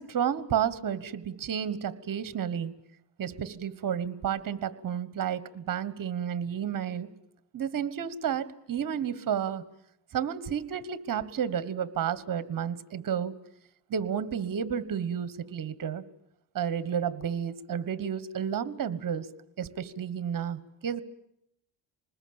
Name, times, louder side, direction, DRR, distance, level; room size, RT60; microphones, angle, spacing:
voice 1, 0.0-2.7 3.2-7.1 7.5-9.6 10.1-13.3 13.9-16.0 16.5-19.3 19.6-21.0, right 8 dB, 40° right, 16 dB, 1.4 m, -31 dB
26.5 x 20.5 x 8.8 m, 0.78 s
cardioid pair, 120°, 48 cm